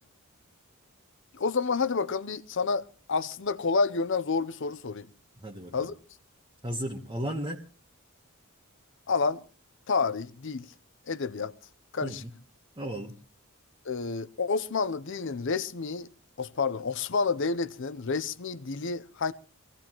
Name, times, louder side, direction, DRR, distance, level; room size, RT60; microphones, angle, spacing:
voice 1, 1.3-2.8 3.1-5.1 5.7-5.9 9.1-9.4 9.9-10.6 11.1-11.5 11.9-12.2 13.9-16.1 16.4-19.3, left 4 dB, 60° left, 0.7 m, -29 dB
voice 2, 5.4-5.9 6.6-7.6 12.0-12.3 12.8-13.1, right 1 dB, 20° right, 1.2 m, -34 dB
23.5 x 16.5 x 3.0 m
head